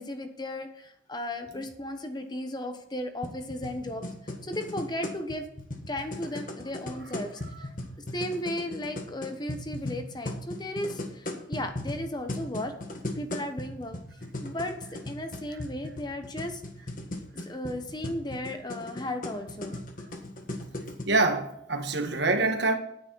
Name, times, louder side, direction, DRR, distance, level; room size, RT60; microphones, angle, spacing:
voice 1, 0.0-4.0 4.4-5.5 5.9-7.7 8.1-12.7 13.1-14.0 14.4-16.9 17.4-19.7, left 1 dB, 20° left, 1.1 m, -35 dB
sound 1, 3.2-21.0, left 1 dB, 45° left, 1.5 m, -38 dB
voice 2, 21.1-22.7, right 3 dB, 65° right, 1.5 m, -25 dB
9.8 x 9.6 x 4.6 m
head